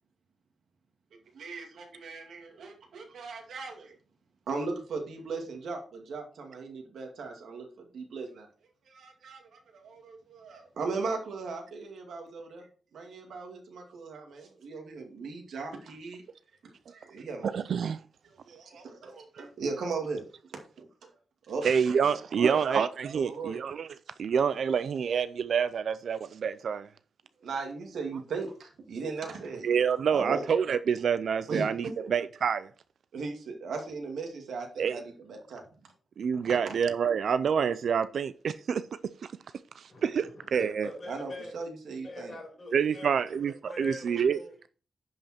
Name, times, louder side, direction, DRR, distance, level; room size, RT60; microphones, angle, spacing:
voice 1, 1.3-3.9 4.5-8.5 8.9-12.6 12.9-16.2 16.6-17.5 18.4-20.2 20.8-20.9 21.5-21.6 22.4-22.8 23.1-23.6 27.4-29.7 30.1-30.4 31.5-31.7 32.0-32.1 33.1-35.6 36.4-36.7 41.1-42.3, right 4 dB, 85° right, 2.3 m, -37 dB
voice 2, 17.4-18.0 21.6-23.9 24.2-26.9 29.6-32.7 34.8-35.0 36.2-38.8 39.8-40.9 42.7-44.4, right 7 dB, 65° right, 0.4 m, -27 dB
voice 3, 40.3-41.5 42.0-43.1 43.7-44.7, left 1 dB, 35° left, 5.3 m, -43 dB
10.5 x 5.5 x 4.3 m
wide cardioid pair, 155°, 0 cm